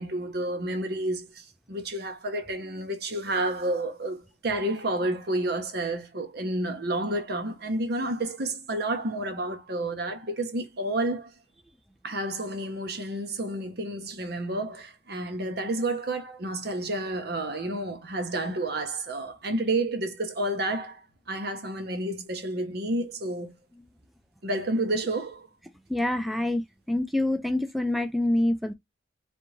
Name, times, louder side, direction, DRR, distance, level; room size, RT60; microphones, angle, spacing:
voice 1, 0.0-4.2 4.4-11.3 12.0-21.0 21.3-23.5 24.4-25.5, right 1 dB, 60° right, 1.0 m, -30 dB
voice 2, 25.9-28.7, left 1 dB, ahead, 0.4 m, -26 dB
4.0 x 3.4 x 3.1 m
head